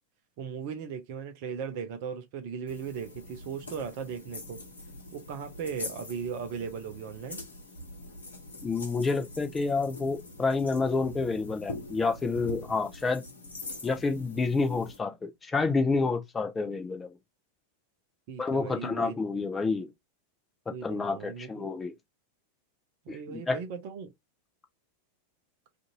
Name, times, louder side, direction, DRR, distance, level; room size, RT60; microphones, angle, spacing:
voice 1, 0.4-4.6 5.1-7.4 18.3-19.2 20.7-21.6 23.1-24.1, right 6 dB, 45° right, 0.6 m, -37 dB
sound 1, 2.7-15.0, left 2 dB, 75° left, 0.9 m, -43 dB
voice 2, 8.6-13.2 13.8-17.2 18.4-19.9 20.7-21.9 23.1-23.6, left 4 dB, 15° left, 0.6 m, -29 dB
2.5 x 2.5 x 2.8 m
figure-of-eight pair, 90°, 0 cm